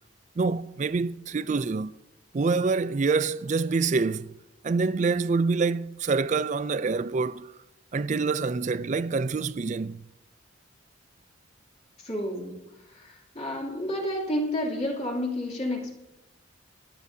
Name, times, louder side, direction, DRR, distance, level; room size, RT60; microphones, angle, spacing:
voice 1, 0.4-2.0 2.3-4.3 4.6-7.5 7.9-10.0, right 4 dB, 35° right, 0.4 m, -26 dB
voice 2, 12.0-12.6 12.9-16.0, left 1 dB, 30° left, 2.9 m, -30 dB
26.5 x 10.5 x 2.8 m
head